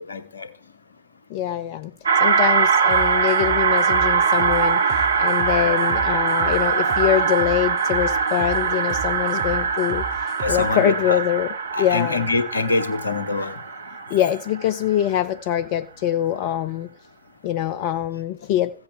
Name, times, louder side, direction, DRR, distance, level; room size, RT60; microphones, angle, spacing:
voice 1, 0.1-0.5 5.6-6.0 10.4-11.2 11.7-13.6 16.3-16.4, left 3 dB, 85° left, 1.0 m, -25 dB
voice 2, 1.3-1.9 2.2-11.5 11.8-12.2 14.1-16.9 17.4-18.7, left 11 dB, 60° left, 0.5 m, -24 dB
sound 1, 2.1-14.8, right 5 dB, 80° right, 0.8 m, -22 dB
sound 2, 2.9-10.7, right 5 dB, 60° right, 2.2 m, -35 dB
15.5 x 8.0 x 3.4 m
figure-of-eight pair, 75°, 0 cm